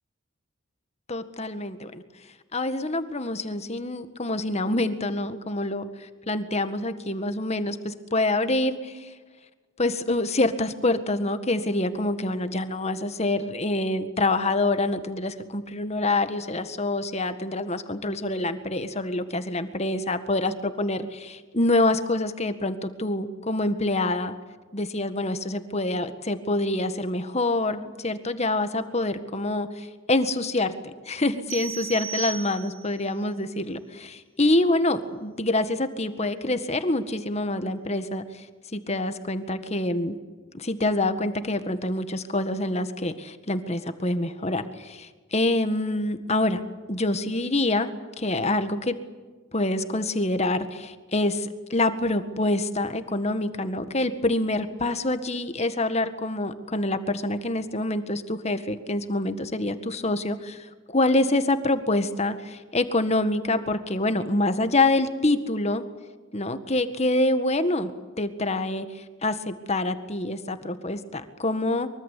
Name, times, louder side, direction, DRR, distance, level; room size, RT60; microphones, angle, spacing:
voice 1, 1.1-2.0 2.5-9.1 9.8-24.3 24.7-38.5 38.7-40.2 40.5-46.6 46.9-47.9 48.2-49.0 49.5-65.8 66.3-67.9 68.2-71.9, left 2 dB, 35° left, 10 dB, 1.8 m, -26 dB
sound 1, 31.5-33.0, right 8 dB, 75° right, 1.1 m, -35 dB
24.0 x 23.5 x 8.5 m, 1.3 s
head